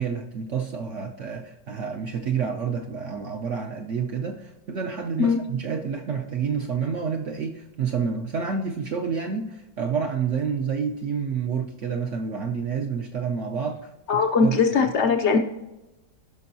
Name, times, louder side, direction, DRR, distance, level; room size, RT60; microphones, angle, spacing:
voice 1, 0.0-13.8 14.4-14.6, right 6 dB, 65° right, 3 dB, 0.8 m, -28 dB
voice 2, 14.1-15.4, left 5 dB, 65° left, 5 dB, 0.7 m, -20 dB
14.5 x 6.1 x 2.7 m, 0.99 s
omnidirectional pair, 1.8 m